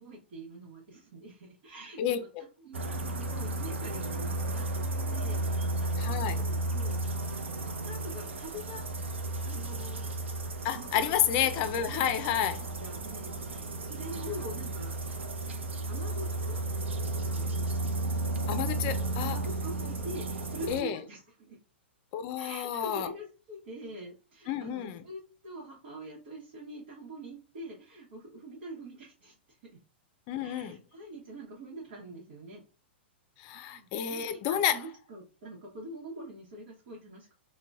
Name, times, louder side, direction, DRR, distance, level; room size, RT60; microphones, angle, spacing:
voice 1, 0.0-2.3 2.6-7.1 7.6-8.8 9.4-10.3 10.7-11.2 11.9-12.5 12.8-15.0 15.9-16.6 17.0-18.0 19.2-21.6 22.3-29.8 30.4-32.6 33.5-37.3, right 1 dB, 60° right, 1.0 m, -45 dB
voice 2, 2.0-2.4 6.0-6.4 10.6-12.6 18.5-19.4 20.7-21.0 22.1-23.1 24.5-25.0 30.3-30.8 33.4-34.8, left 10 dB, 45° left, 0.4 m, -30 dB
sound 1, 2.7-20.8, right 2 dB, 90° right, 0.5 m, -33 dB
3.8 x 2.2 x 2.3 m
hypercardioid pair, 115°, 6 cm